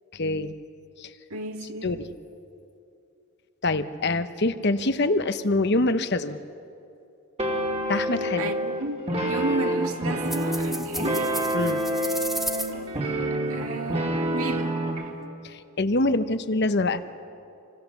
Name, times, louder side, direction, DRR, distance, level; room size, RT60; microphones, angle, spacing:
voice 1, 0.1-0.5 1.0-1.1 1.8-2.1 3.6-6.4 7.9-8.5 11.5-11.8 15.4-17.1, left 2 dB, 50° left, 0.9 m, -25 dB
voice 2, 1.3-2.0 8.4-11.4 13.5-14.8, right 2 dB, 75° right, 2.0 m, -33 dB
sound 1, 7.4-15.1, right 1 dB, 30° right, 2.3 m, -27 dB
sound 2, 10.2-12.7, equal, ahead, 0.9 m, -34 dB
27.5 x 25.0 x 7.1 m
head